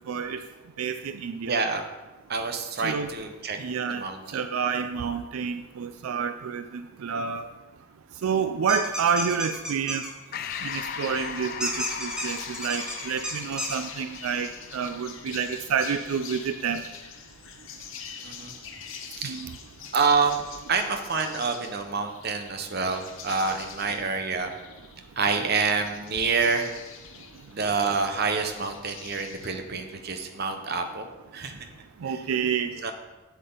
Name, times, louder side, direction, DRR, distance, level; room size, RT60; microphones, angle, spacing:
voice 1, 0.1-0.4 0.8-1.6 2.8-3.1 3.6-4.0 4.3-7.5 8.2-10.0 10.6-11.7 12.0-16.8 19.2-19.5 32.0-32.9, right 6 dB, 80° right, 9 dB, 0.4 m, -29 dB
voice 2, 1.5-1.9 2.3-3.6 3.9-4.4 18.2-18.5 19.2-19.4 19.9-24.5 25.2-26.7 27.5-31.0 31.3-31.6 32.1-32.2 32.8-32.9, right 4 dB, 50° right, 5 dB, 0.8 m, -27 dB
sound 1, 8.7-10.1 11.6-13.8, equal, 5° right, 0.9 m, -32 dB
Breathing, 10.3-15.2, left 7 dB, 45° left, 0.4 m, -38 dB
sound 2, 10.4-29.5, left 6 dB, 65° left, 0.8 m, -44 dB
8.0 x 7.5 x 3.8 m, 1.2 s
head